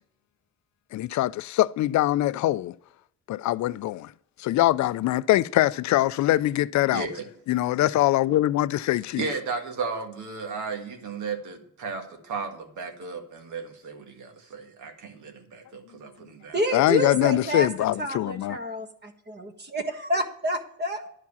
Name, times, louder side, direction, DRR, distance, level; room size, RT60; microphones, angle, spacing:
voice 1, 0.9-2.7 3.3-4.1 4.4-7.1 7.5-9.3 16.7-18.6, left 15 dB, 70° left, 0.4 m, -23 dB
voice 2, 6.9-7.3 9.2-16.6, right 4 dB, 75° right, 1.7 m, -34 dB
voice 3, 16.5-17.7 18.0-21.1, equal, 35° right, 1.5 m, -28 dB
10.5 x 4.7 x 7.1 m
cardioid pair, 90°, 30 cm